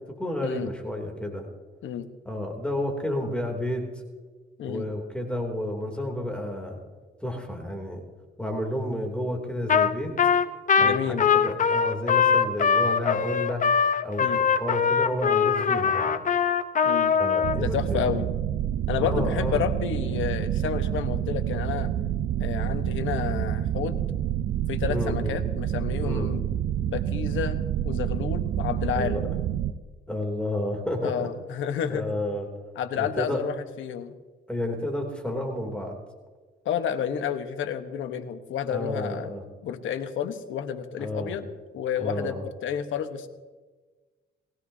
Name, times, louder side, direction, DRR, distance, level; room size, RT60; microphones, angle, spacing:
voice 1, 0.2-1.5 2.2-3.9 4.7-6.8 7.2-8.0 8.4-10.1 10.8-13.6 14.0-16.2 17.2-18.1 19.0-19.6 24.9-25.4 26.0-26.3 28.9-29.2 30.1-31.3 31.9-32.5 32.9-33.4 34.5-36.0 38.7-39.4 41.0-41.4 42.0-42.4, left 1 dB, 5° left, 1 dB, 3.0 m, -31 dB
Trumpet, 9.7-9.9 10.2-17.6, left 6 dB, 40° left, 0.8 m, -22 dB
voice 2, 10.8-11.2 14.2-14.4 16.8-17.2 17.5-18.3 18.9-21.9 22.4-24.0 24.7-26.4 26.9-29.2 31.0-32.0 32.7-34.1 36.6-39.3 39.6-41.5 41.7-43.3, left 8 dB, 80° left, 9 dB, 1.2 m, -30 dB
sound 1, 17.4-29.7, right 11 dB, 75° right, 0.6 m, -28 dB
21.0 x 16.5 x 2.8 m, 1.3 s
cardioid pair, 90°, 20 cm